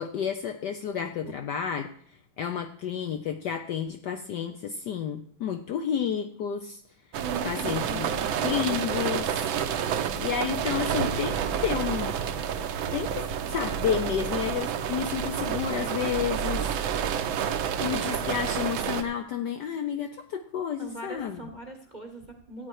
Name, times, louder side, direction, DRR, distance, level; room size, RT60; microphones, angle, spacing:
voice 1, 0.0-6.8 7.4-8.1 8.4-9.5 10.2-12.2 12.9-16.8 17.8-21.4, left 8 dB, 70° left, 8 dB, 1.0 m, -31 dB
sound 1, 7.1-19.0, right 8 dB, 70° right, 1.5 m, -29 dB
voice 2, 7.2-8.4 20.8-22.7, right 3 dB, 30° right, 5 dB, 0.9 m, -40 dB
13.0 x 8.9 x 4.7 m, 0.63 s
omnidirectional pair, 2.4 m